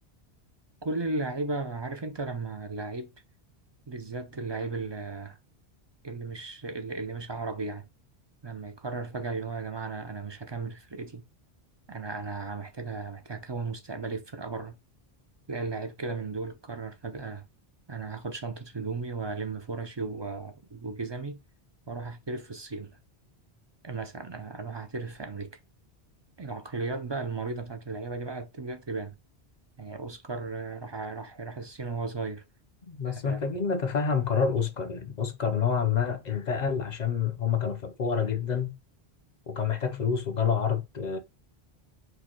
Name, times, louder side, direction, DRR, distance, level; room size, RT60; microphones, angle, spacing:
voice 1, 0.8-3.1 3.9-5.4 6.0-7.9 8.4-11.2 11.9-14.8 15.5-17.5 17.9-21.4 21.9-22.9 23.8-25.5 26.4-29.1 29.8-32.4 33.1-33.4, right 3 dB, 35° right, 0.4 m, -35 dB
voice 2, 32.9-38.7 39.5-41.2, left 6 dB, 50° left, 0.7 m, -28 dB
4.8 x 2.3 x 4.4 m
omnidirectional pair, 1.1 m